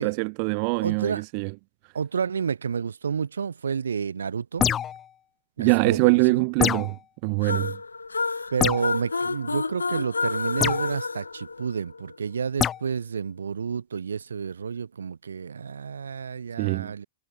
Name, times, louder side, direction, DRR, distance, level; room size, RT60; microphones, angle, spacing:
voice 1, 0.0-1.5 5.6-6.9 7.2-7.7 16.6-16.9, right 40 dB or more, 40° right, 0.8 m, -23 dB
voice 2, 0.8-1.2 1.9-4.7 5.6-6.5 8.5-17.1, right 6 dB, 70° right, 1.5 m, -30 dB
sound 1, 4.6-5.1 6.6-7.0 8.6-8.9 10.6-10.8 12.6-12.8, left 9 dB, 25° left, 0.5 m, -24 dB
sound 2, 7.4-12.2, left 4 dB, 80° left, 0.4 m, -29 dB
figure-of-eight pair, 100°, 0 cm